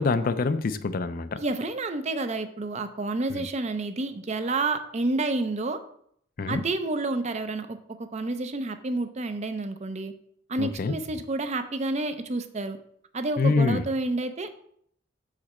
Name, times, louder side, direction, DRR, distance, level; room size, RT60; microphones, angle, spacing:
voice 1, 0.0-1.4 3.3-3.5 6.4-6.6 10.6-10.9 13.4-13.8, left 4 dB, 45° left, 12 dB, 0.4 m, -25 dB
voice 2, 1.4-5.8 6.5-7.8 8.1-10.1 10.5-12.8 13.1-14.6, right 2 dB, 35° right, 9 dB, 0.5 m, -29 dB
6.9 x 5.0 x 4.2 m, 0.67 s
head